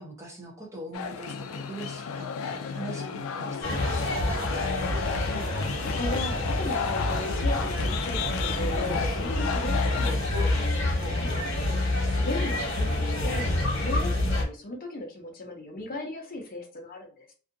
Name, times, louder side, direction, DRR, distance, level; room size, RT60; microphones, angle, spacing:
voice 1, 0.0-4.3 11.6-12.0, right 2 dB, 15° right, -1 dB, 0.7 m, -42 dB
sound 1, 0.9-10.1, left 6 dB, 90° left, 0.3 m, -33 dB
sound 2, 3.6-14.4, left 1 dB, 60° left, 1.1 m, -27 dB
voice 2, 5.2-11.3 11.8-11.9 12.2-17.3, left 1 dB, 45° left, 2 dB, 0.6 m, -37 dB
2.6 x 2.4 x 2.5 m, 0.40 s
head